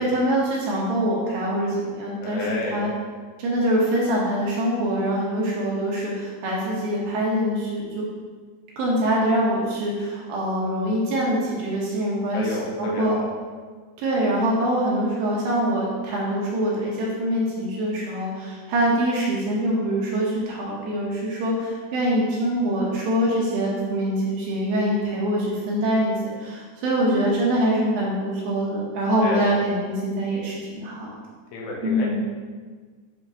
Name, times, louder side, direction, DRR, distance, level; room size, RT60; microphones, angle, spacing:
voice 1, 0.0-2.9 3.4-8.1 8.8-13.2 14.0-31.1 31.8-32.2, right 1 dB, 75° right, -4 dB, 2.5 m, -24 dB
voice 2, 2.2-2.9 12.3-13.3 29.2-29.5 31.5-32.1, left 3 dB, 85° left, -3 dB, 3.2 m, -31 dB
9.0 x 3.8 x 2.7 m, 1.5 s
omnidirectional pair, 4.7 m